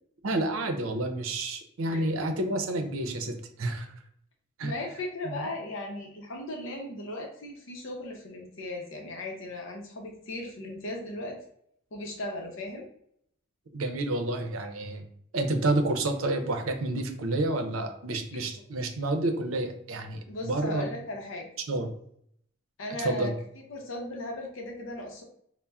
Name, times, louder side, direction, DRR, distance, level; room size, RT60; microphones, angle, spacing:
voice 1, 0.2-3.9 4.6-4.7 5.2-5.5 13.7-15.1 15.3-20.9 21.7-21.9 23.0-23.3, right 2 dB, 85° right, 6 dB, 0.6 m, -29 dB
voice 2, 4.6-11.4 11.9-12.9 18.3-18.5 20.3-21.5 22.8-23.3 23.7-25.2, left 1 dB, 65° left, 0 dB, 0.6 m, -37 dB
5.3 x 2.1 x 2.3 m, 0.68 s
head